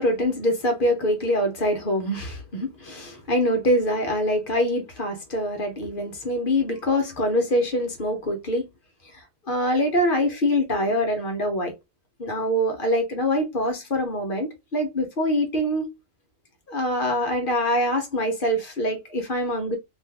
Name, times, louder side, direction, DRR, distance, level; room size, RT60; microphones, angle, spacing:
voice 1, 0.0-8.7 9.1-11.7 12.2-15.9 16.7-19.7, equal, 45° left, 0.9 m, -24 dB
2.6 x 2.5 x 3.4 m
omnidirectional pair, 1.4 m